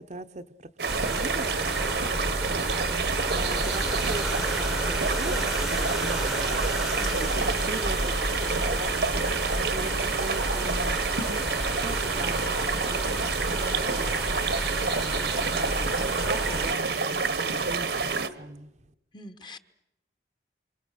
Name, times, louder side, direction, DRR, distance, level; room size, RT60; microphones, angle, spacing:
voice 1, 0.0-1.6 2.4-6.6 7.4-8.1 8.4-9.2 9.7-11.0 11.6-12.5 12.9-14.2 15.0-18.7, right 2 dB, 40° right, 8 dB, 0.8 m, -40 dB
sound 1, 0.8-18.3, right 4 dB, 70° right, 1.3 m, -28 dB
sound 2, 0.9-16.7, equal, ahead, 0.9 m, -31 dB
sound 3, 3.7-18.2, left 6 dB, 45° left, 1.7 m, -45 dB
voice 2, 7.0-7.3 19.1-19.6, left 2 dB, 25° left, 11 dB, 1.0 m, -42 dB
27.5 x 26.0 x 6.5 m, 0.92 s
head